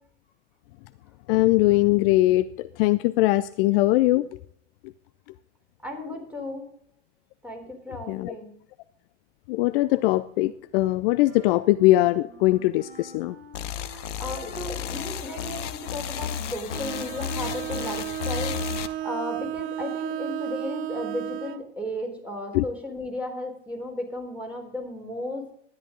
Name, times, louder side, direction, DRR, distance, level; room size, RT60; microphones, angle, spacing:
voice 1, 1.3-4.2 8.1-8.3 9.5-13.4 22.5-22.6, left 17 dB, 50° left, 14 dB, 0.5 m, -21 dB
voice 2, 5.8-6.7 7.4-8.5 13.9-25.4, left 1 dB, 5° right, 1 dB, 3.8 m, -35 dB
Wind instrument woodwind instrument, 10.7-18.2, right 3 dB, 65° right, 4.1 m, -49 dB
sound 1, 13.5-18.9, left 8 dB, 75° left, 0.9 m, -33 dB
Bowed string instrument, 16.7-21.7, right 12 dB, 35° right, 0.5 m, -33 dB
12.5 x 10.5 x 3.9 m, 0.66 s
hypercardioid pair, 85°, 36 cm